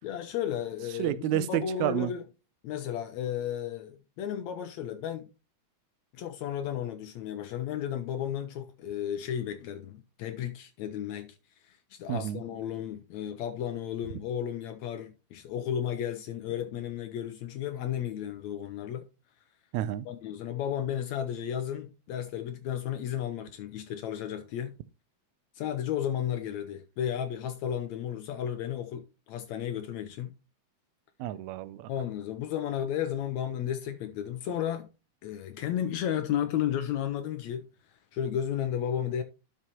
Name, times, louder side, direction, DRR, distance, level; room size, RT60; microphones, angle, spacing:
voice 1, 0.0-2.2 2.6-5.3 6.1-11.4 11.6-19.0 20.1-24.8 25.6-30.3 31.9-34.9 35.2-37.7 38.1-39.2, left 10 dB, 75° left, 1.9 m, -33 dB
voice 2, 1.0-2.1 12.1-12.4 19.7-20.1 31.2-31.9, right 13 dB, 80° right, 1.8 m, -30 dB
11.0 x 5.6 x 3.0 m
omnidirectional pair, 3.5 m